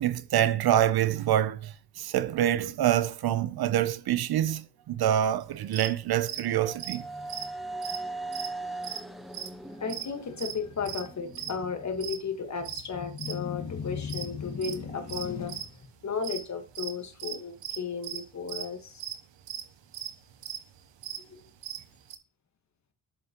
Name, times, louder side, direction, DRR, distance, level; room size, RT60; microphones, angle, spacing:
voice 1, 0.0-7.0, right 11 dB, 60° right, 0.5 m, -26 dB
sound 1, 5.6-11.5, right 2 dB, ahead, 0.4 m, -40 dB
sound 2, 5.6-5.9 6.3-6.5 6.8-8.5 8.8-9.0 9.3-9.6 9.9-10.6 10.8-11.0 11.3-12.2 12.6-13.4 13.7-15.8 16.1-16.4 16.7-22.2, right 10 dB, 90° right, 0.8 m, -38 dB
voice 2, 9.8-19.0 21.3-21.4, left 5 dB, 40° left, 1.3 m, -34 dB
7.7 x 7.3 x 2.9 m
cardioid pair, 120°, 43 cm